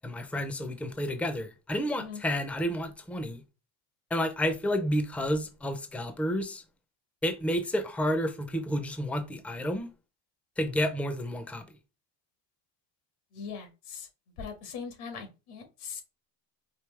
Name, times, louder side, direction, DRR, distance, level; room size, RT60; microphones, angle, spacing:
voice 1, 0.0-3.4 4.1-6.6 7.2-9.9 10.6-11.7, equal, 5° left, 0.4 m, -30 dB
voice 2, 13.3-14.1 14.4-16.0, left 6 dB, 90° left, 1.8 m, -40 dB
4.9 x 2.7 x 3.2 m
cardioid pair, 130°, 48 cm